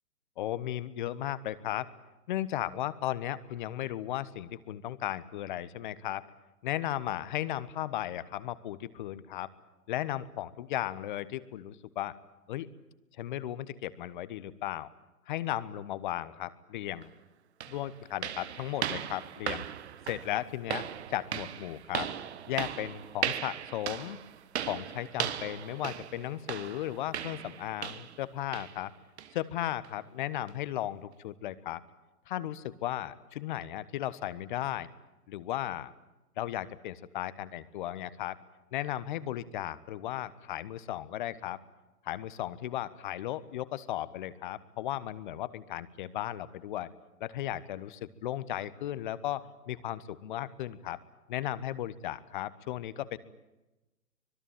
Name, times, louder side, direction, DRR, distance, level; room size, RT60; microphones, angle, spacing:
voice 1, 0.4-1.9 2.3-6.2 6.6-9.5 9.9-12.1 12.5-12.7 13.2-14.9 15.3-17.1 17.7-19.6 20.1-20.8 21.1-22.1 22.5-24.2 24.6-28.9 29.3-31.8 32.3-34.9 35.3-35.9 36.4-38.4 38.7-41.6 42.0-46.9 47.2-51.0 51.3-53.2, left 13 dB, 30° left, 16 dB, 1.2 m, -35 dB
sound 1, 17.0-17.1 17.6-28.2 28.5-28.8 29.2-29.4 29.8-29.9 30.5-30.6, right 10 dB, 45° right, 1.5 m, -37 dB
25.0 x 21.5 x 9.1 m, 1.0 s
figure-of-eight pair, 130°, 46 cm